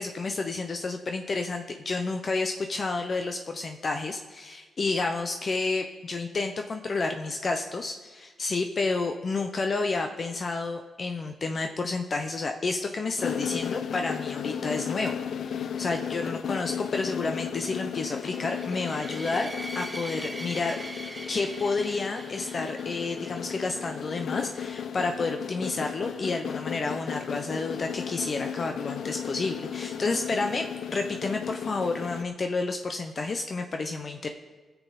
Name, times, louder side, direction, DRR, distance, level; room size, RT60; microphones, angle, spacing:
voice 1, 0.0-20.8 21.3-34.3, left 3 dB, 50° left, 5 dB, 0.8 m, -30 dB
sound 1, 13.2-32.2, left 8 dB, 75° left, 0.4 m, -35 dB
sound 2, 18.3-23.6, right 2 dB, 25° right, 1.6 m, -42 dB
19.0 x 7.1 x 4.1 m, 1.3 s
cardioid pair, 60°, 0 cm